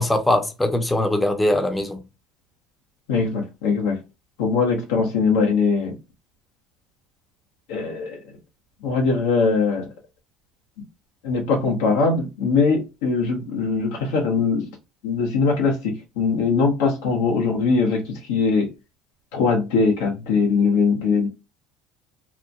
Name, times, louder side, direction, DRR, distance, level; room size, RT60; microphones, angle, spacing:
voice 1, 0.0-2.0, left 1 dB, 10° left, 0.7 m, -21 dB
voice 2, 3.1-4.0 4.4-5.9 7.7-8.2 8.8-9.9 11.2-14.7 15.0-18.7 19.3-21.3, left 4 dB, 80° left, 0.7 m, -21 dB
2.9 x 2.1 x 2.5 m
hypercardioid pair, 85°, 0 cm